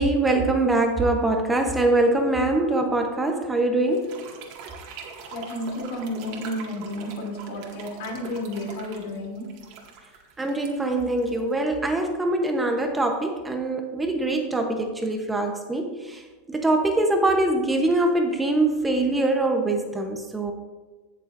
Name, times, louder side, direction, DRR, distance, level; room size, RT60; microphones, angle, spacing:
voice 1, 0.0-4.2 10.4-20.5, right 2 dB, 10° right, 4 dB, 0.9 m, -23 dB
sound 1, 3.9-11.9, right 5 dB, 55° right, 2.0 m, -43 dB
voice 2, 5.3-9.6, left 1 dB, 70° left, 0 dB, 3.1 m, -32 dB
17.0 x 6.7 x 2.6 m, 1.3 s
supercardioid pair, 135°, 0 cm